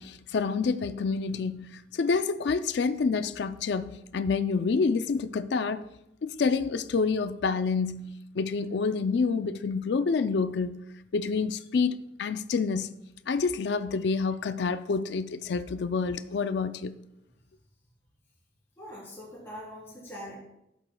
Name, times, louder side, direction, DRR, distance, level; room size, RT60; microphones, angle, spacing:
voice 1, 0.0-5.9 6.2-10.9 11.1-12.9 13.3-16.9, left 4 dB, 70° left, 0.4 m, -28 dB
voice 2, 18.8-20.4, equal, 15° left, 2.9 m, -42 dB
13.0 x 8.0 x 2.3 m
head